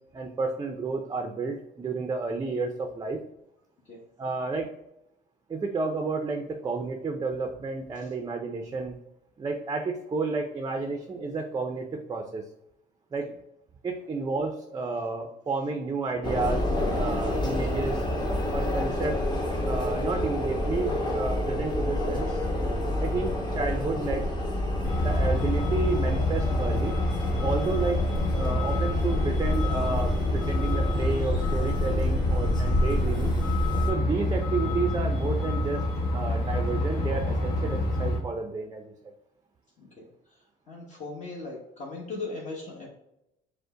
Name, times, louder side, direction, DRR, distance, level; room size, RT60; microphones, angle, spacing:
voice 1, 0.1-3.2 4.2-4.7 5.5-9.0 9.4-12.4 13.1-13.3 13.8-16.7 17.0-18.0 18.5-19.2 19.7-22.4 23.0-24.3 24.9-26.9 27.4-28.0 28.4-33.4 33.9-35.8 36.1-38.8, right 3 dB, 25° right, 4 dB, 0.5 m, -31 dB
sound 1, 16.2-33.9, left 1 dB, 25° left, 0.9 m, -29 dB
Truck, 24.8-38.2, left 1 dB, 65° left, 1.0 m, -27 dB
voice 2, 39.8-40.1 40.7-42.9, left 3 dB, 45° left, -4 dB, 1.1 m, -39 dB
5.2 x 2.1 x 3.7 m, 0.83 s
cardioid pair, 110°, 17 cm